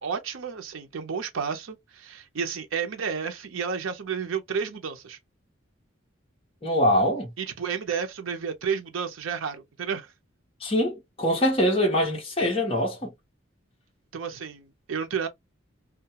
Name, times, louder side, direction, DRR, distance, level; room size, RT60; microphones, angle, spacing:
voice 1, 0.0-5.2 7.4-10.1 14.1-15.3, right 6 dB, 75° right, 0.6 m, -31 dB
voice 2, 6.6-7.3 10.6-13.1, equal, 25° left, 0.8 m, -23 dB
2.2 x 2.2 x 2.7 m
head